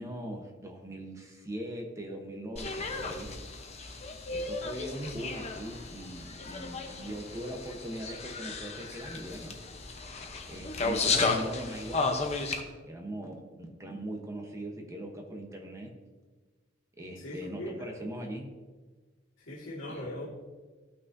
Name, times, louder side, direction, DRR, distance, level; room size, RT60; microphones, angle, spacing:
voice 1, 0.0-3.3 4.3-9.6 10.5-12.2 12.8-15.9 17.0-18.5 19.9-20.1, right 1 dB, 15° right, 2 dB, 1.0 m, -40 dB
sound 1, 2.6-12.6, left 3 dB, 35° left, 0.9 m, -34 dB
voice 2, 17.2-17.9 19.5-20.3, left 1 dB, 80° left, -8 dB, 2.1 m, -39 dB
14.5 x 6.1 x 2.7 m, 1.3 s
head